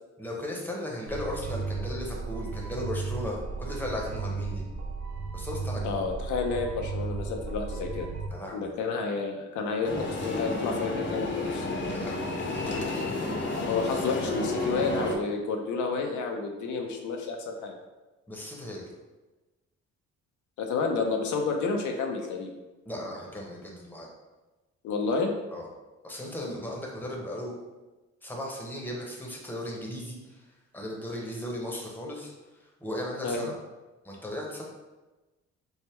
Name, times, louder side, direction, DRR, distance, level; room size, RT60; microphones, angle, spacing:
voice 1, 0.2-4.6 5.3-5.9 8.3-8.7 11.9-13.2 18.3-18.8 22.9-24.1 25.5-25.7 26.0-27.6 28.2-30.4 30.7-32.3 32.6-33.5 34.0-34.6, left 1 dB, 5° left, -1 dB, 0.8 m, -36 dB
sound 1, 1.1-8.3, right 4 dB, 60° right, 0.7 m, -35 dB
voice 2, 5.8-8.1 8.5-11.7 13.6-17.8 20.6-22.5 24.8-25.3 33.2-33.4, left 4 dB, 75° left, 2 dB, 0.6 m, -30 dB
sound 2, 9.8-15.2, left 2 dB, 40° left, 0.7 m, -31 dB
3.4 x 2.1 x 4.3 m, 1.1 s
cardioid pair, 90°, 30 cm